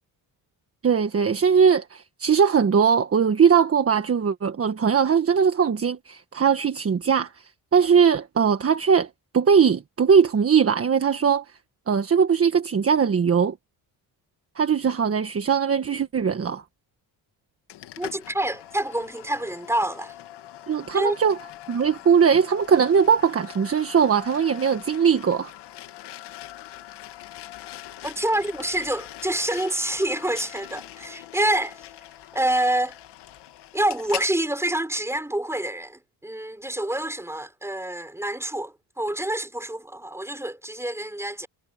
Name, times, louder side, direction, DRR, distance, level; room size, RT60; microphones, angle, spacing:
voice 1, 0.8-9.1 9.3-11.4 11.9-13.5 14.6-16.6 20.7-21.4 21.7-25.5, right 6 dB, 35° right, 1.5 m, -20 dB
sound 1, 17.7-34.3, left 13 dB, 85° left, 2.1 m, -42 dB
voice 2, 18.0-20.1 20.9-21.2 28.0-31.9 32.3-33.0 33.7-41.5, right 1 dB, 5° right, 6.2 m, -27 dB
cardioid pair, 110°, 40 cm